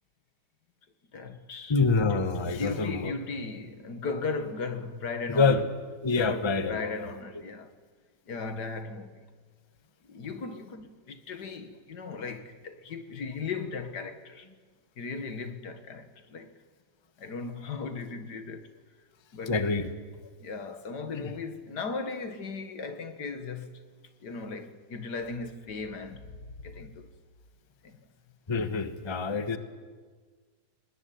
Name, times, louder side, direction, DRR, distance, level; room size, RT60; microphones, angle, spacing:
voice 1, 1.1-5.6 6.1-7.7 8.3-9.2 10.1-14.5 15.0-16.5 17.2-18.7 19.3-19.6 20.4-23.8 24.2-27.1 27.8-28.0, left 4 dB, 65° left, 2.1 m, -37 dB
voice 2, 1.7-3.1 5.3-5.6 6.0-7.1 19.5-19.9 21.1-21.3 28.5-29.6, left 4 dB, 20° left, 1.1 m, -26 dB
24.0 x 20.0 x 9.2 m
omnidirectional pair, 1.9 m